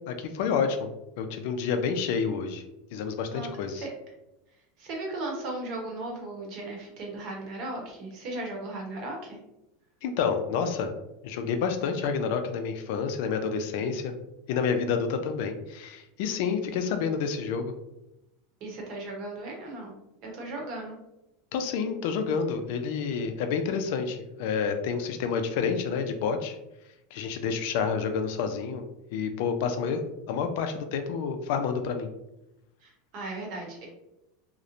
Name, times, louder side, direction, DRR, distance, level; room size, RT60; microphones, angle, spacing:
voice 1, 0.1-0.9 1.2-2.6 2.9-3.8 10.0-10.9 11.2-14.1 14.5-17.7 21.5-26.6 27.1-28.8 29.1-32.1, left 6 dB, 60° left, 7 dB, 0.3 m, -29 dB
voice 2, 3.3-3.9 4.5-9.4 18.6-19.9 20.2-20.9 32.8-33.9, right 2 dB, 45° right, -1 dB, 0.8 m, -37 dB
2.9 x 2.0 x 2.4 m, 0.90 s
supercardioid pair, 160°, 0 cm